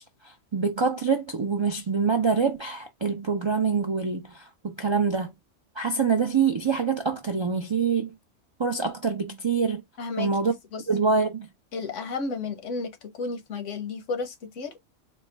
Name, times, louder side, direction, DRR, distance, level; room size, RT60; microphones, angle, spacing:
voice 1, 0.0-5.3 5.8-8.1 8.6-9.8 10.2-10.5 10.9-11.5, right 5 dB, 50° right, 0.3 m, -25 dB
voice 2, 10.0-10.8 11.7-14.7, left 4 dB, 80° left, 1.2 m, -33 dB
4.2 x 2.2 x 3.2 m
omnidirectional pair, 1.3 m